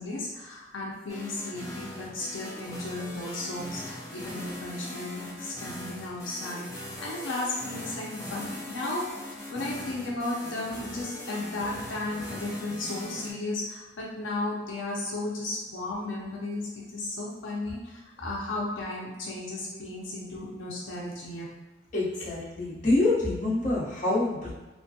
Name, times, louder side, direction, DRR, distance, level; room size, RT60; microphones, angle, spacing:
voice 1, 0.0-9.1 9.5-21.5, left 2 dB, 85° left, -4 dB, 0.6 m, -34 dB
sound 1, 1.1-13.3, left 1 dB, 15° left, 0.6 m, -40 dB
voice 2, 21.9-24.5, left 2 dB, 40° left, -7 dB, 0.9 m, -26 dB
3.1 x 2.2 x 2.7 m, 1.1 s
head